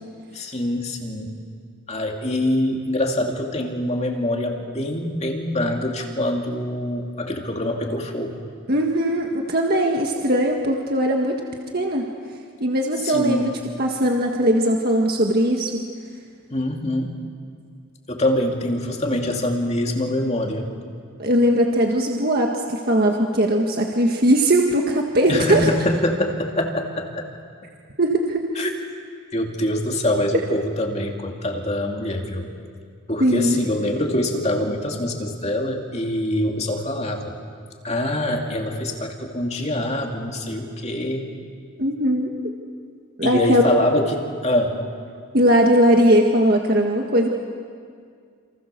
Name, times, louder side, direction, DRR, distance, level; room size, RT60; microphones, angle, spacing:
voice 1, 0.3-1.3 1.9-8.5 13.0-13.6 16.5-17.1 18.1-20.7 25.3-27.3 28.6-28.7 29.3-32.5 33.1-37.3 37.8-41.3 43.2-44.8, left 1 dB, 30° left, 1 dB, 2.6 m, -24 dB
voice 2, 8.7-11.4 11.7-12.1 12.6-13.5 13.8-15.7 21.2-25.7 28.0-28.4 33.2-33.6 41.8-42.3 43.2-43.6 45.3-47.3, equal, 45° right, 1 dB, 1.8 m, -19 dB
28.5 x 28.0 x 6.9 m, 2.1 s
head